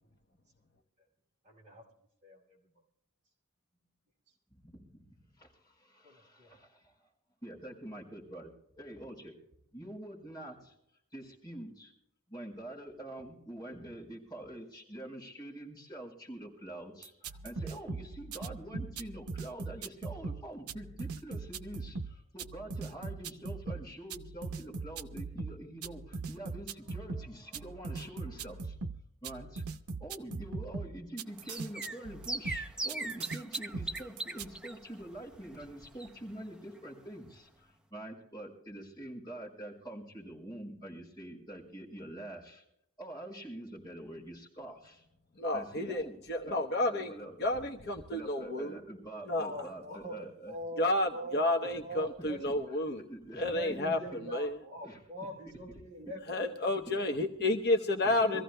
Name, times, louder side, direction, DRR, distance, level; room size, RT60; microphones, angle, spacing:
voice 1, 1.4-1.8 2.2-2.6 6.0-6.6 49.4-52.4 53.4-56.2 56.5-56.6 57.0-57.2 58.1-58.4, equal, 35° right, -3 dB, 4.8 m, -44 dB
voice 2, 4.5-5.0 5.4-6.9 7.4-9.3 9.7-10.7 11.1-11.9 12.3-28.8 29.2-29.6 30.0-42.6 43.0-45.0 45.5-46.2 46.4-46.6 46.9-47.4 48.1-50.5 51.6-51.8 52.2-52.5 52.9-53.8 54.1-54.2 54.8-55.0 56.9-57.1 58.0-58.4, right 1 dB, 20° left, -2 dB, 4.4 m, -46 dB
sound 1, 17.0-34.5, right 4 dB, 90° right, 0.7 m, -40 dB
sound 2, 31.3-36.5 36.7-36.8 37.1-37.2, right 2 dB, 5° right, 0.6 m, -40 dB
voice 3, 45.4-47.1 47.4-48.8 49.3-49.5 50.8-53.0 53.4-54.0 54.3-54.5 56.3-58.4, left 1 dB, 50° left, 4 dB, 1.0 m, -30 dB
25.5 x 15.0 x 2.2 m, 0.77 s
head